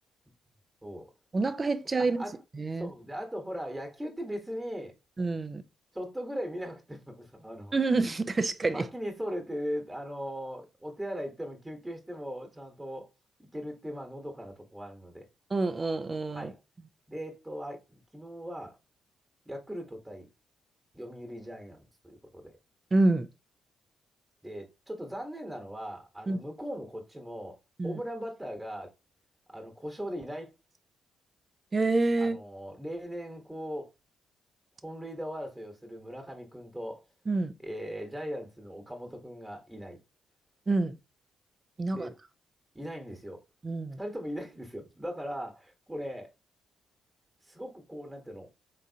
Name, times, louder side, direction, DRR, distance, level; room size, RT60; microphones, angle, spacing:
voice 1, 1.3-2.2 2.5-2.9 5.2-5.6 7.7-8.8 15.5-16.5 22.9-23.3 26.3-26.4 27.8-28.0 31.7-32.4 37.3-37.5 40.7-41.0 41.8-42.1 43.6-44.0, right 3 dB, 35° right, 0.6 m, -27 dB
voice 2, 2.8-5.0 5.9-7.7 8.7-13.1 13.4-15.2 16.3-16.6 17.1-18.8 19.4-20.3 20.9-22.5 24.4-27.5 27.8-28.9 29.5-30.5 32.2-33.9 34.8-37.0 37.6-40.0 41.8-42.2 42.7-43.4 44.0-46.3 47.4-48.5, equal, 10° right, 1.4 m, -39 dB
3.9 x 3.6 x 2.8 m
hypercardioid pair, 45°, 0 cm